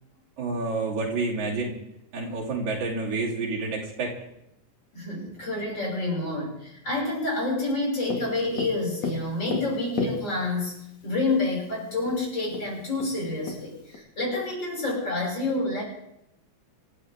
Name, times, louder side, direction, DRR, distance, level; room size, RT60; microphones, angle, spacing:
voice 1, 0.4-1.7 2.1-4.1, right 3 dB, 75° right, -4 dB, 4.3 m, -29 dB
voice 2, 4.9-15.8, left 2 dB, 35° left, -3 dB, 7.1 m, -28 dB
Tap, 8.1-10.7 11.7-11.8 12.1-12.2 12.5-14.0, left 4 dB, 65° left, 3.5 m, -33 dB
26.5 x 13.5 x 3.7 m, 0.81 s
omnidirectional pair, 3.4 m